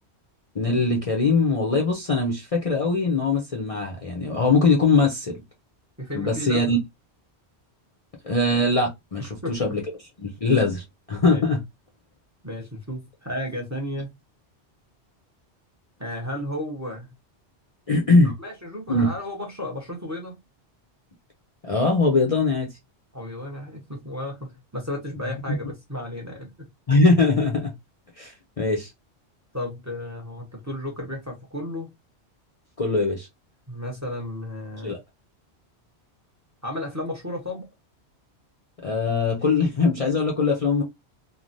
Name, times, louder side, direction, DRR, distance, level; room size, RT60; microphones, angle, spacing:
voice 1, 0.5-5.4 6.1-6.8 8.2-9.8 10.2-11.6 17.9-18.3 18.9-19.1 21.6-22.7 26.9-27.7 28.2-28.9 32.8-33.3 34.8-35.0 38.8-40.8, left 3 dB, 40° left, 0.6 m, -21 dB
voice 2, 6.0-6.7 9.2-9.8 11.2-11.4 12.4-14.1 16.0-17.1 18.2-20.4 23.1-26.7 29.5-31.9 33.7-35.0 36.6-37.6, left 1 dB, 15° right, 0.8 m, -33 dB
3.2 x 2.2 x 2.5 m
omnidirectional pair, 1.1 m